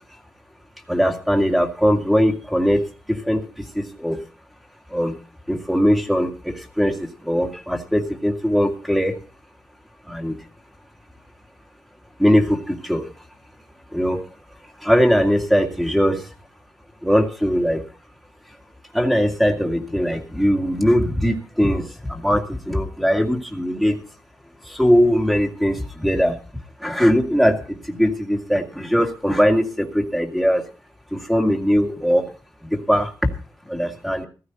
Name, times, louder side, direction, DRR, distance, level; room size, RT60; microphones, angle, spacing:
voice 1, 0.9-2.8 3.1-4.2 4.9-5.2 5.5-9.1 10.1-10.4 12.2-13.1 13.9-14.2 14.8-16.3 17.0-17.8 18.9-24.0 24.6-26.4 26.8-30.6 31.1-32.2 32.6-33.1 33.7-34.3, equal, ahead, 3 dB, 2.1 m, -20 dB
15.0 x 14.5 x 4.0 m, 0.36 s
wide cardioid pair, 120°, 7 cm